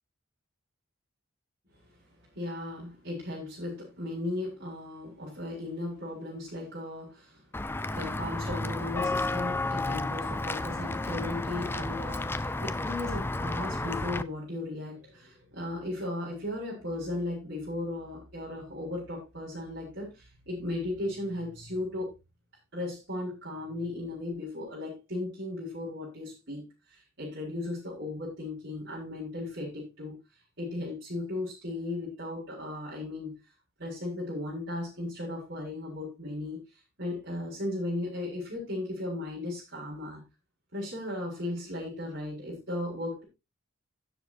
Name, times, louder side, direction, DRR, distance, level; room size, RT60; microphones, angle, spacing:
voice 1, 2.3-7.4 7.9-22.1 22.7-30.2 30.6-33.4 33.8-36.6 37.0-40.2 40.7-43.2, left 1 dB, 55° right, -6 dB, 5.1 m, -36 dB
Walk footsteps / Bell, 7.5-14.2, left 2 dB, 10° left, 0.4 m, -32 dB
17.0 x 7.3 x 2.7 m, 0.24 s
head